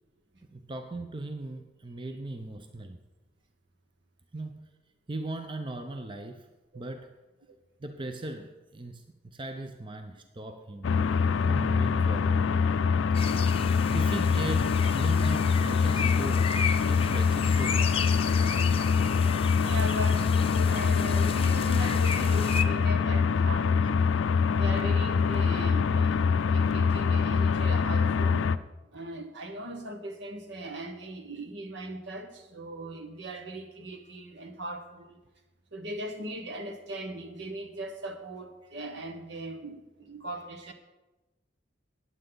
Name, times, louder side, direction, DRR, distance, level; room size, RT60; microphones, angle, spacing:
voice 1, 0.5-3.0 4.3-4.7 5.1-6.5 6.7-7.2 7.8-10.9 11.5-12.6 13.9-18.1, right 2 dB, 25° right, 0.6 m, -38 dB
sound 1, 10.8-28.6, left 5 dB, 80° left, 0.4 m, -24 dB
sound 2, 13.1-22.6, left 6 dB, 30° left, 0.6 m, -35 dB
voice 2, 19.6-24.1 24.5-28.5 28.9-35.2 35.7-40.7, right 1 dB, 65° right, 1.3 m, -39 dB
14.5 x 9.5 x 4.0 m
head